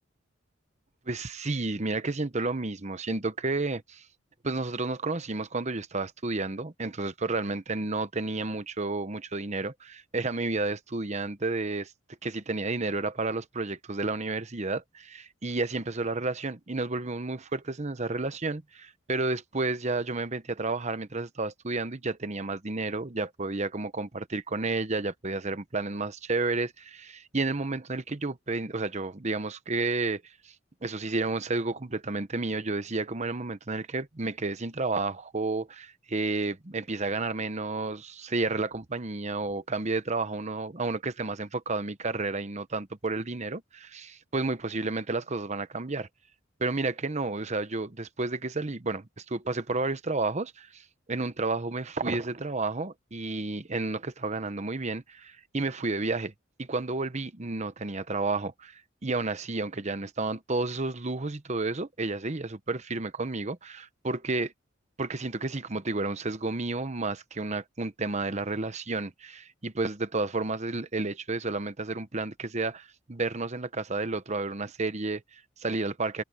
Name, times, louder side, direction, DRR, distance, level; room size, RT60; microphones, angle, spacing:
voice 1, 1.1-4.0 4.4-11.9 12.2-30.2 30.8-46.1 46.6-50.8 51.1-56.3 56.6-64.5 65.0-76.2, right 3 dB, 35° right, 1.0 m, -31 dB
head